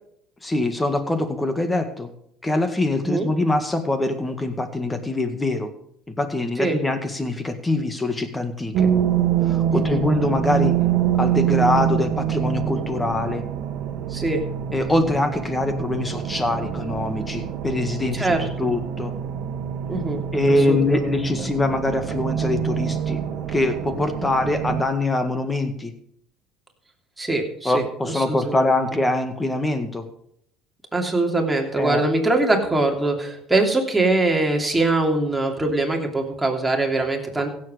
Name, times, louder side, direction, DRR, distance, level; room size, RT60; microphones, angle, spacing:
voice 1, 0.4-2.1 2.4-5.7 6.2-8.9 9.4-10.8 11.2-13.4 14.7-18.3 18.6-19.1 20.3-23.2 23.5-25.9 27.7-30.1 31.8-32.0, left 2 dB, 15° left, 8 dB, 1.9 m, -23 dB
sound 1, 8.7-24.8, right 9 dB, 60° right, 1.4 m, -25 dB
voice 2, 9.7-10.0 14.1-14.4 18.1-18.7 19.9-21.2 27.2-28.7 30.9-37.5, right 2 dB, 10° right, 1 dB, 3.0 m, -23 dB
16.0 x 7.7 x 5.1 m, 0.71 s
supercardioid pair, 80°, 0 cm